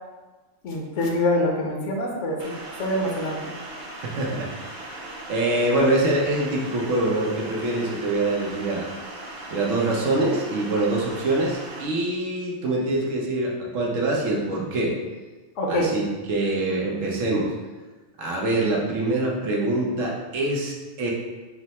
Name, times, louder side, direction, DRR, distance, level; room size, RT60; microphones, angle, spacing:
voice 1, 0.6-2.5 2.8-3.4 15.6-15.9, left 1 dB, 75° left, -1 dB, 1.0 m, -25 dB
sound 1, 2.4-11.9, right 2 dB, 50° right, 0.6 m, -38 dB
voice 2, 4.0-8.9 9.5-14.9 15.7-17.5 18.2-21.1, right 2 dB, 90° right, -2 dB, 1.2 m, -25 dB
4.5 x 2.0 x 4.1 m, 1.3 s
omnidirectional pair, 1.3 m